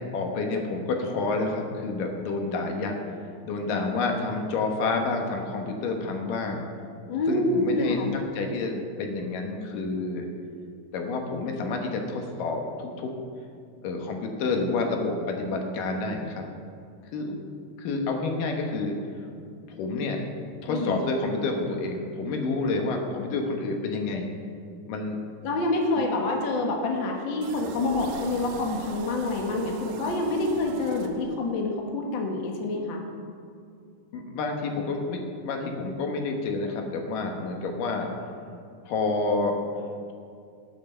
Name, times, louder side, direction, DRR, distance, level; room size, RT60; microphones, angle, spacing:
voice 1, 0.1-3.0 3.4-6.7 7.3-10.3 10.9-13.1 13.8-16.5 17.1-17.4 17.8-19.0 19.7-20.2 20.6-24.3 24.9-25.2 34.1-38.1 38.9-39.6, left 3 dB, 75° left, 3 dB, 2.9 m, -29 dB
voice 2, 7.1-8.2 20.7-21.0 22.8-22.9 25.4-33.0, left 2 dB, 50° left, 1 dB, 1.5 m, -27 dB
sound 1, 27.4-31.6, right 5 dB, 85° right, 2.6 m, -40 dB
19.0 x 8.0 x 4.5 m, 2.4 s
omnidirectional pair, 3.9 m